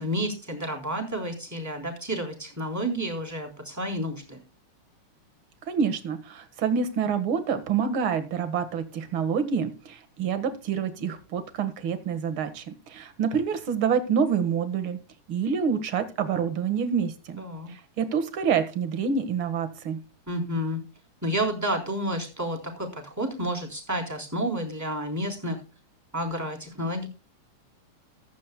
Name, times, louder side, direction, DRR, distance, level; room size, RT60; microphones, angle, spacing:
voice 1, 0.0-4.4 17.4-17.7 20.3-20.8 21.2-25.6 26.1-27.1, equal, 5° right, 0 dB, 3.4 m, -30 dB
voice 2, 5.7-15.0 15.3-20.0, right 6 dB, 45° right, 9 dB, 2.0 m, -27 dB
15.0 x 12.5 x 2.3 m, 0.34 s
omnidirectional pair, 3.7 m